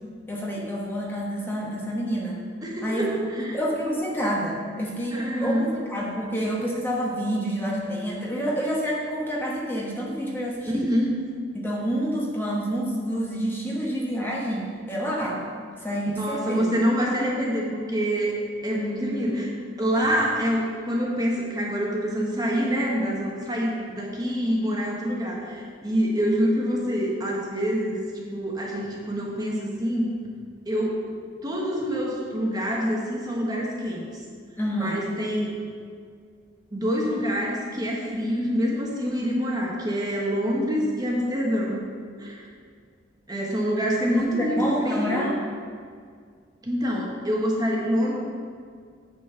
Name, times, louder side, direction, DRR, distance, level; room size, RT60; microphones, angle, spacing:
voice 1, 0.3-2.4 2.8-3.1 3.5-10.9 11.5-15.4 15.8-16.7 34.6-35.1 44.2-45.4, equal, 10° left, -4 dB, 1.1 m, -28 dB
voice 2, 2.6-3.6 5.1-5.7 10.7-11.2 16.2-18.3 18.6-30.1 30.6-31.0 31.4-34.2 34.7-35.6 36.7-41.8 42.2-42.5 43.3-45.3 46.6-48.1, equal, 20° right, -3 dB, 1.1 m, -26 dB
8.7 x 4.3 x 6.7 m, 2.1 s
head